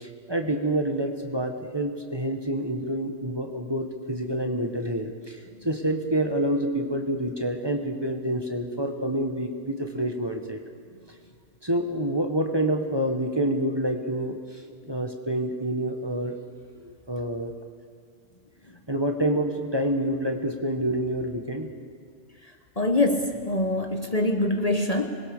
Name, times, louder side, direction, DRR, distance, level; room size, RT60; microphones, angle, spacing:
voice 1, 0.0-10.6 11.6-16.3 16.8-17.5 18.9-21.7, right 1 dB, 20° right, 4 dB, 1.7 m, -28 dB
voice 2, 22.8-25.1, left 2 dB, 35° left, 5 dB, 1.4 m, -24 dB
26.0 x 20.5 x 6.9 m, 2.2 s
omnidirectional pair, 1.2 m